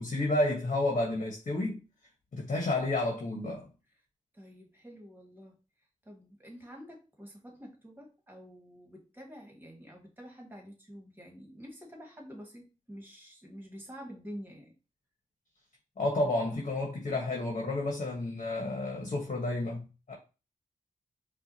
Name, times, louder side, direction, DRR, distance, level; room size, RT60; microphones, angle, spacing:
voice 1, 0.0-1.8 2.3-3.7 16.0-20.1, left 2 dB, 60° left, 1.3 m, -31 dB
voice 2, 4.3-5.6 6.0-14.8, equal, 15° right, 1.8 m, -48 dB
5.6 x 2.5 x 2.8 m
cardioid pair, 65°, 14 cm